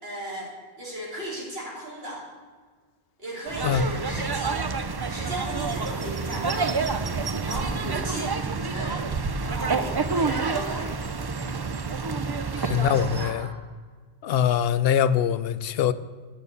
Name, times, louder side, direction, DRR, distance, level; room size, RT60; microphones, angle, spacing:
voice 1, 0.0-2.3 3.2-4.7 5.1-8.4 8.7-9.1 9.4-11.0 12.6-13.5, right 1 dB, 65° right, -4 dB, 3.2 m, -36 dB
sound 1, 3.5-13.3, right 4 dB, 40° right, 0.3 m, -28 dB
voice 2, 12.6-13.5 14.2-15.9, left 9 dB, 70° left, 14 dB, 0.8 m, -23 dB
9.2 x 6.5 x 8.2 m, 1.5 s
omnidirectional pair, 1.1 m